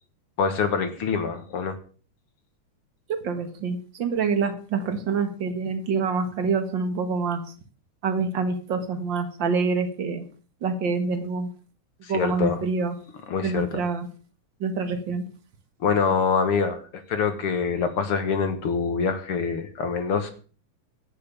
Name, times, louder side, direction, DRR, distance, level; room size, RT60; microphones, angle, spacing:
voice 1, 0.4-1.8 12.0-12.6 13.3-13.7 15.8-16.8 17.1-20.3, left 5 dB, 50° left, 9 dB, 2.0 m, -25 dB
voice 2, 3.1-7.4 8.0-10.2 10.6-11.5 12.1-12.9 13.4-14.1 14.6-15.2, right 5 dB, 45° right, 8 dB, 1.9 m, -26 dB
12.5 x 9.5 x 6.9 m, 0.40 s
omnidirectional pair, 3.6 m